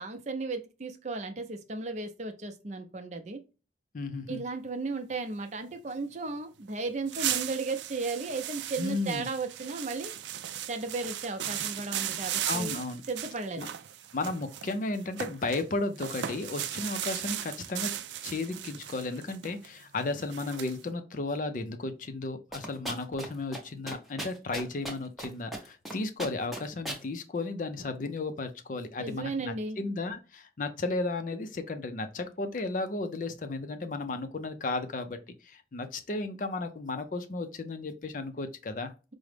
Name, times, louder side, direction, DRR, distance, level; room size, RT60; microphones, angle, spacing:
voice 1, 0.0-3.4 4.3-10.1 10.7-12.7 13.1-13.7 29.0-29.8, right 3 dB, 40° right, 0.5 m, -35 dB
voice 2, 3.9-4.4 8.8-9.3 12.5-13.0 13.6-13.7 14.1-17.9 18.2-38.9, left 3 dB, 45° left, 0.4 m, -34 dB
sound 1, 6.7-6.8 7.1-15.6 16.0-20.8, right 11 dB, 85° right, 0.4 m, -36 dB
sound 2, 22.5-23.3 23.5-23.6 23.9-25.3 25.5-25.9 26.2-27.0, right 1 dB, ahead, 0.6 m, -36 dB
4.8 x 2.1 x 3.2 m
head